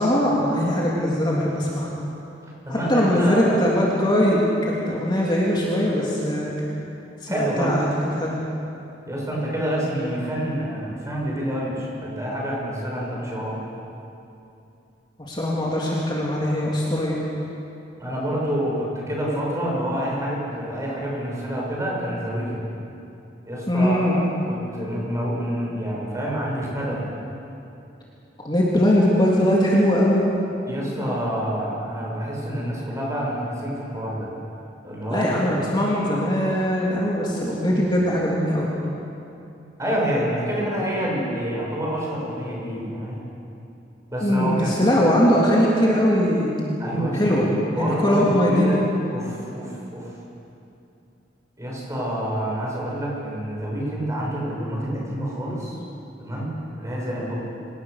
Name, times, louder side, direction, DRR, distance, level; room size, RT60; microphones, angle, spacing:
voice 1, 0.0-1.9 2.7-6.5 7.2-7.9 8.1-8.3 15.2-17.2 23.7-24.1 28.4-30.2 35.1-38.7 44.2-46.5 47.1-47.5 47.7-48.8, equal, 25° left, -5 dB, 3.1 m, -21 dB
voice 2, 2.6-3.6 7.3-7.8 9.1-13.6 18.0-22.7 23.4-27.0 30.7-34.3 34.8-35.3 39.8-43.2 44.1-45.1 46.8-47.4 47.7-48.8 49.1-50.1 51.6-55.8 56.2-57.4, equal, 20° right, -4 dB, 6.6 m, -27 dB
27.0 x 17.5 x 6.7 m, 2.7 s
head